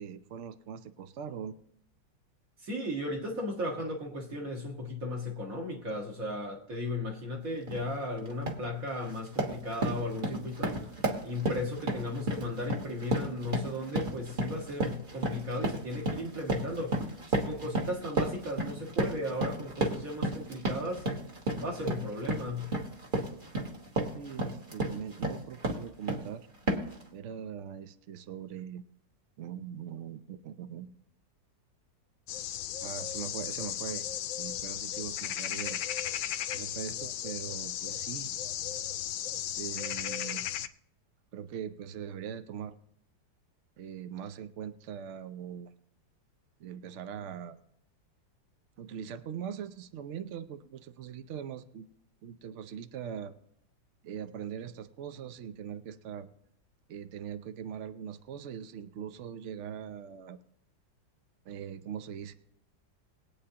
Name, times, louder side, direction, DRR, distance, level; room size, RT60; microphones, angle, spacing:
voice 1, 0.0-1.6 24.1-26.5 27.1-28.8 29.4-31.0 32.8-34.1 34.4-35.8 36.5-38.3 39.6-40.4 41.3-42.8 43.8-45.7 46.6-47.6 48.8-51.9 52.2-53.3 54.0-56.3 56.9-60.4 61.5-62.3, right 8 dB, 80° right, 0.6 m, -41 dB
voice 2, 2.6-10.9 11.2-17.0 17.3-21.1 21.6-22.7, left 1 dB, 45° right, 2.2 m, -36 dB
sound 1, 7.7-7.9 8.3-8.7 9.0-26.3 26.7-27.0, right 1 dB, 30° right, 1.5 m, -33 dB
sound 2, 32.3-40.7, left 11 dB, 85° left, 1.3 m, -35 dB
22.0 x 8.7 x 2.9 m
omnidirectional pair, 2.1 m